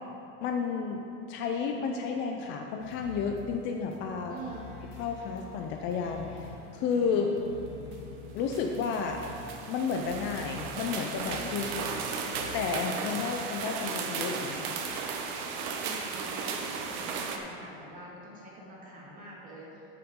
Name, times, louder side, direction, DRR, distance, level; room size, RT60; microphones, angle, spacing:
voice 1, 0.4-4.4 5.0-7.3 8.3-9.2 9.7-11.7 12.5-14.8, left 5 dB, 40° left, 3 dB, 0.5 m, -32 dB
sound 1, 2.8-13.3, left 3 dB, 80° left, 1.4 m, -47 dB
voice 2, 4.3-4.8 7.2-7.5 11.6-12.0 13.1-13.4 15.8-19.9, right 1 dB, 25° right, -4 dB, 1.9 m, -46 dB
sound 2, 7.9-8.0 8.5-17.4, right 5 dB, 50° right, 1.0 m, -35 dB
13.0 x 6.0 x 3.7 m, 2.9 s
supercardioid pair, 155°, 31 cm